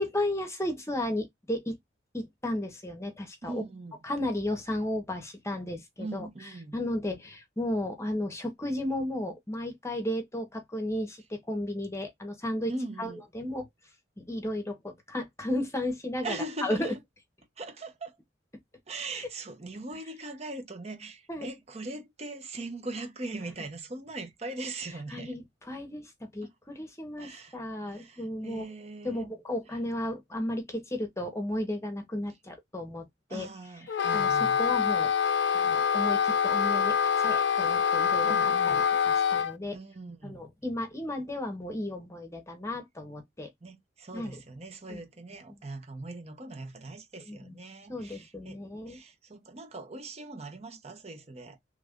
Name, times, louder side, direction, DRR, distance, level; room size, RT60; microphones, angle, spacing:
voice 1, 0.0-1.8 2.1-3.6 4.0-6.3 6.7-12.7 13.0-13.7 14.2-16.4 16.6-16.9 19.1-19.2 21.3-21.5 25.1-28.7 29.0-33.5 34.1-35.1 35.5-39.8 40.2-43.5 44.1-44.4 44.9-45.0 47.3-47.6 47.9-49.0, left 1 dB, 15° left, 0.9 m, -34 dB
voice 2, 3.4-4.0 6.0-6.8 12.7-13.2 16.2-17.0 17.6-18.2 18.9-25.4 26.4-26.5 27.2-29.3 33.3-34.6 38.2-38.8 39.7-40.4 43.6-48.6 48.9-51.6, right 2 dB, 35° right, 0.8 m, -40 dB
Wind instrument woodwind instrument, 33.9-39.5, left 7 dB, 65° left, 0.4 m, -25 dB
3.2 x 2.5 x 3.5 m
head